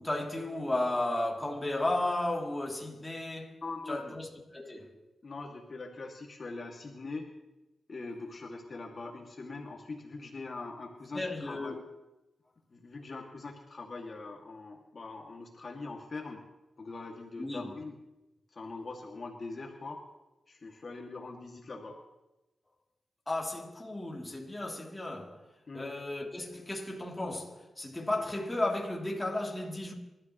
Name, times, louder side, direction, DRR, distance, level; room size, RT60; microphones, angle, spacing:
voice 1, 0.0-3.6 3.9-4.9 11.1-11.8 17.4-17.7 23.3-25.5 25.7-29.9, left 1 dB, 15° left, 2.9 m, -34 dB
voice 2, 3.6-4.2 5.2-7.3 7.9-11.8 12.7-16.4 16.8-18.0 18.5-20.0 20.5-22.0 25.7-25.9, left 3 dB, 50° left, 2.2 m, -42 dB
27.5 x 13.0 x 3.1 m
cardioid pair, 80°, 0 cm